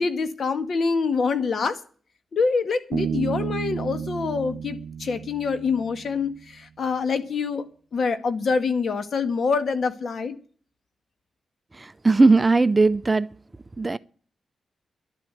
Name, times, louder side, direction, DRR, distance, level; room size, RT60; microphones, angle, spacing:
voice 1, 0.0-1.8 2.3-7.6 7.9-10.4, left 5 dB, 60° left, 1.7 m, -25 dB
Bass guitar, 2.9-6.4, right 8 dB, 75° right, 0.6 m, -32 dB
voice 2, 11.7-13.3 13.8-14.0, right 3 dB, 25° right, 0.6 m, -19 dB
12.0 x 7.5 x 9.9 m
cardioid pair, 85°, 0 cm